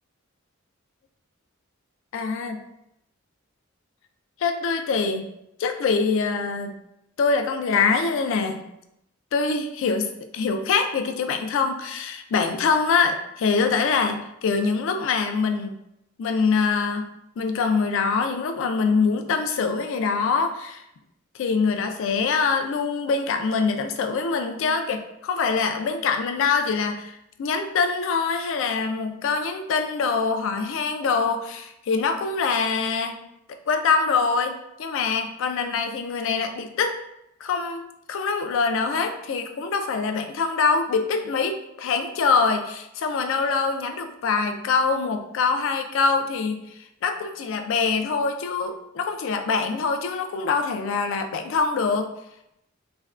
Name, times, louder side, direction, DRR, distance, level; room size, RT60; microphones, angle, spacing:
voice 1, 2.1-2.6 4.4-5.3 5.6-6.8 7.2-8.7 9.3-15.8 16.2-17.1 17.4-20.8 21.3-33.2 33.7-37.0 37.4-52.1, left 5 dB, 65° left, 6 dB, 0.3 m, -24 dB
3.4 x 2.1 x 2.3 m, 0.82 s
head